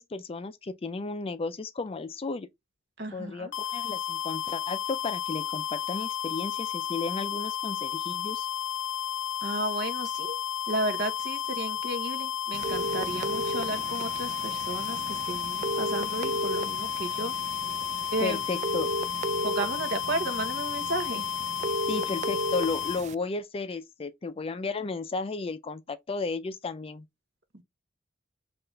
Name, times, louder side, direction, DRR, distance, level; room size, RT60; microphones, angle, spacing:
voice 1, 0.0-2.5 3.1-8.5 18.2-18.9 21.9-27.1, left 3 dB, 30° left, 0.4 m, -34 dB
voice 2, 3.0-3.5 9.4-10.4 10.7-17.3 18.1-18.7 19.4-21.2 27.5-27.6, right 2 dB, 60° right, 1.0 m, -33 dB
sound 1, 3.5-23.0, left 10 dB, 85° left, 0.7 m, -32 dB
sound 2, 12.5-23.1, right 2 dB, 35° right, 0.3 m, -34 dB
5.6 x 2.5 x 3.2 m
head